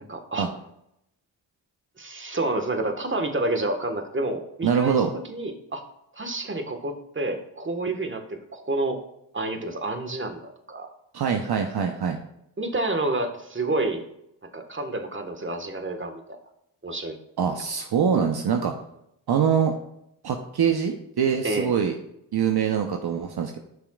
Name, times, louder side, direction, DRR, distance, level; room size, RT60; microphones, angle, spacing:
voice 1, 0.1-0.5 2.0-5.0 5.3-5.8 6.1-9.0 9.3-10.9 12.6-14.0 14.5-16.4 16.8-17.2 21.4-21.7, right 2 dB, 25° right, 6 dB, 1.5 m, -29 dB
voice 2, 4.6-5.1 11.1-12.2 17.4-18.7 19.3-19.7 20.2-21.9 22.3-23.6, right 7 dB, 50° right, 4 dB, 0.9 m, -24 dB
12.5 x 5.8 x 2.4 m, 0.78 s
supercardioid pair, 40°, 48 cm